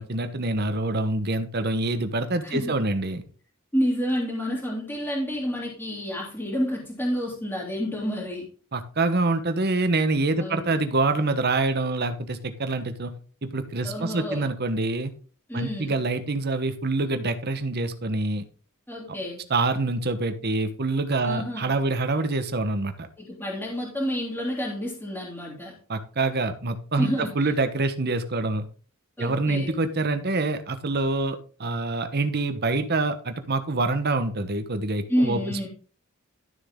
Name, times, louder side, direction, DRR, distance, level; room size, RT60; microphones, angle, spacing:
voice 1, 0.0-3.2 8.7-13.1 13.4-15.1 15.5-18.5 19.5-23.1 25.9-28.6 29.2-35.7, right 2 dB, 45° right, 9 dB, 1.1 m, -26 dB
voice 2, 2.4-2.8 3.7-8.5 10.4-10.8 13.8-14.5 15.5-16.0 18.9-19.4 21.2-21.6 23.2-25.7 27.0-27.5 29.2-29.7 35.1-35.7, equal, 10° left, -4 dB, 2.9 m, -29 dB
12.5 x 6.8 x 3.7 m, 0.40 s
head